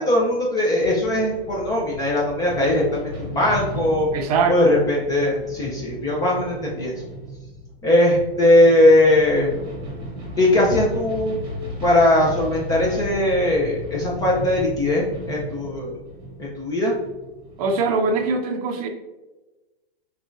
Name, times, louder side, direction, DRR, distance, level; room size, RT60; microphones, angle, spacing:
voice 1, 0.0-4.1 4.5-6.9 7.8-9.5 10.4-11.4 11.8-16.0 16.4-16.9, left 1 dB, 15° left, -3 dB, 0.4 m, -19 dB
sound 1, 0.8-18.3, equal, 15° right, 1.1 m, -36 dB
voice 2, 4.1-4.6 17.6-18.9, right 4 dB, 40° right, 4 dB, 0.5 m, -22 dB
5.9 x 2.3 x 2.5 m, 1.1 s
hypercardioid pair, 120°, 31 cm